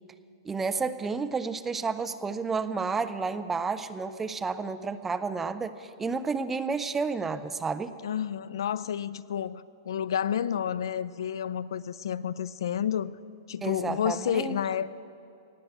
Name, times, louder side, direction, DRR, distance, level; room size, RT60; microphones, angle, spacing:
voice 1, 0.5-7.9 13.6-14.6, right 4 dB, 10° right, 0.4 m, -31 dB
voice 2, 8.0-13.2 13.5-14.9, left 9 dB, 75° left, 0.4 m, -30 dB
18.0 x 7.4 x 8.9 m
hypercardioid pair, 160°, 2 cm